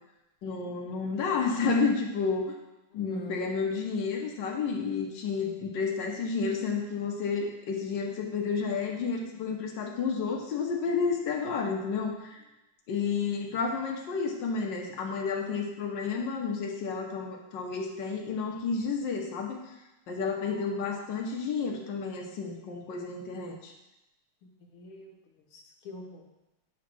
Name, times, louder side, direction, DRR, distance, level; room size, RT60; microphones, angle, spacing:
voice 1, 0.4-2.5 2.9-12.4 12.9-19.6 20.1-23.7, left 5 dB, 60° left, 1 dB, 1.6 m, -31 dB
voice 2, 2.9-3.5 20.4-20.7 24.6-25.2 25.5-26.3, left 1 dB, 85° left, 1 dB, 2.0 m, -45 dB
9.4 x 3.2 x 6.1 m, 0.96 s
omnidirectional pair, 2.4 m